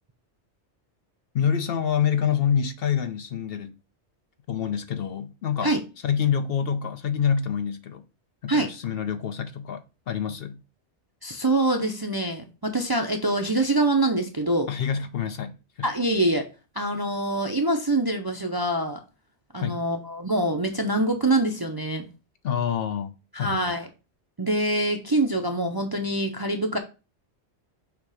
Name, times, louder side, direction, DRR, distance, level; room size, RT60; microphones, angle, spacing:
voice 1, 1.3-3.8 4.5-5.8 6.0-8.0 8.4-10.6 14.7-15.9 19.5-19.8 22.4-23.7, left 8 dB, 60° left, 0.8 m, -27 dB
voice 2, 11.2-14.7 15.8-16.5 16.7-19.0 19.5-22.1 23.3-23.9 24.4-26.8, right 2 dB, 25° right, 0.5 m, -25 dB
6.9 x 2.9 x 4.8 m
omnidirectional pair, 1.2 m